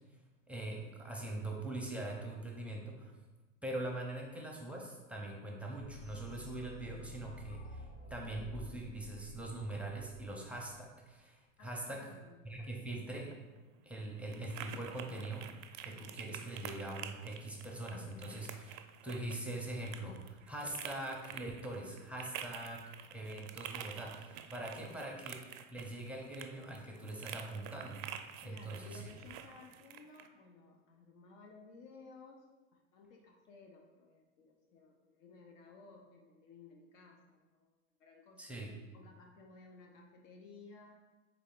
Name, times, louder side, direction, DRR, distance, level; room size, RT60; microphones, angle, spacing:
voice 1, 0.5-3.1 3.6-12.1 12.4-13.3 13.8-15.5 15.8-25.4 25.7-28.1 28.4-29.1 38.4-38.7, right 1 dB, 5° right, -1 dB, 0.5 m, -42 dB
sound 1, 5.8-10.7, left 1 dB, 35° left, 0.8 m, -50 dB
voice 2, 11.6-12.5 24.7-25.2 28.4-32.5 32.7-38.5 38.9-40.9, left 4 dB, 70° left, 1 dB, 0.8 m, -57 dB
sound 2, 13.1-30.3, right 10 dB, 65° right, 0.5 m, -49 dB
3.8 x 3.5 x 3.7 m, 1.2 s
supercardioid pair, 115°, 40 cm